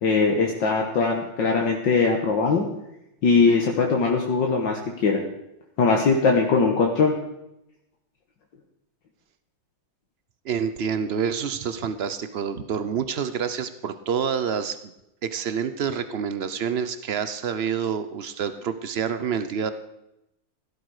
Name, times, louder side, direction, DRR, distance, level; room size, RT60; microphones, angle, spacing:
voice 1, 0.0-2.7 3.2-5.2 5.8-7.1, left 4 dB, 70° left, 1 dB, 2.0 m, -21 dB
voice 2, 10.4-14.9 15.2-19.7, right 7 dB, 80° right, 11 dB, 0.5 m, -27 dB
15.5 x 13.0 x 4.9 m, 0.85 s
omnidirectional pair, 2.1 m